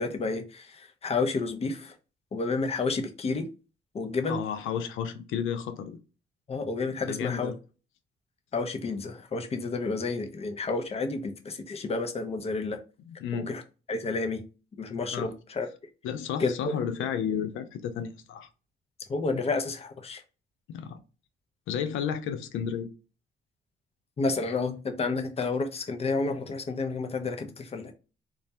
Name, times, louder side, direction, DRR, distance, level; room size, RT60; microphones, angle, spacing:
voice 1, 0.0-1.9 2.3-3.5 3.9-4.4 6.5-7.5 8.5-12.8 13.3-13.6 13.9-14.4 14.8-15.7 16.4-16.5 19.1-20.2 24.2-27.9, left 3 dB, 30° left, 0.5 m, -30 dB
voice 2, 4.2-6.0 7.1-7.6 13.1-13.5 15.1-15.3 16.0-18.5 20.7-21.0 21.7-22.9, left 8 dB, 85° left, 0.4 m, -32 dB
2.3 x 2.1 x 2.7 m
cardioid pair, 90°, 20 cm